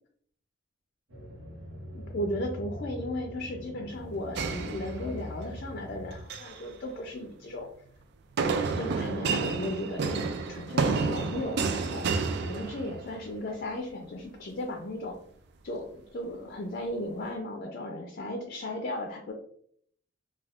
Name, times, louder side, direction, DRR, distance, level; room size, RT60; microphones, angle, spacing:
sound 1, 1.1-6.2, left 1 dB, 85° right, 0.9 m, -42 dB
voice 1, 1.9-7.7 8.7-12.1 12.4-15.2 15.6-19.3, left 1 dB, 50° left, 2 dB, 0.4 m, -35 dB
sound 2, 4.4-5.4 6.1-6.6 8.4-13.2, right 4 dB, 60° right, 0.3 m, -30 dB
2.4 x 2.3 x 3.3 m, 0.63 s
head